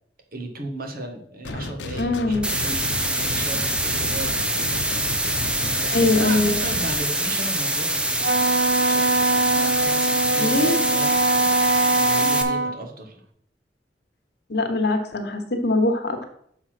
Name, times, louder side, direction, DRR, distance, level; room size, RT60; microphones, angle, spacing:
voice 1, 0.3-4.3 5.6-8.5 8.8-13.2, right 2 dB, 55° right, 3 dB, 1.6 m, -36 dB
sound 1, 1.4-7.0, left 2 dB, 90° left, 0.7 m, -33 dB
voice 2, 1.9-2.4 5.9-6.6 10.4-10.8 14.5-16.2, left 2 dB, 65° left, 6 dB, 1.2 m, -22 dB
sound 2, 2.4-12.4, right 1 dB, 5° right, 0.7 m, -25 dB
Wind instrument woodwind instrument, 8.2-12.8, right 2 dB, 75° right, 0.5 m, -22 dB
6.7 x 4.8 x 5.9 m, 0.69 s
head